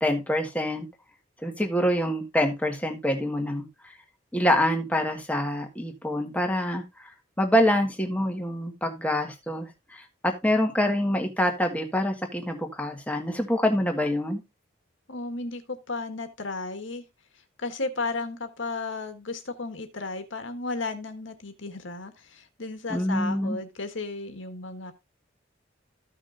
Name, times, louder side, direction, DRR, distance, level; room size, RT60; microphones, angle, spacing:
voice 1, 0.0-0.9 1.4-3.9 4.3-7.1 7.4-14.4 22.9-23.6, left 1 dB, 10° left, 1.6 m, -26 dB
voice 2, 15.1-17.0 17.6-24.9, left 3 dB, 80° left, 1.8 m, -34 dB
15.0 x 6.1 x 2.6 m
head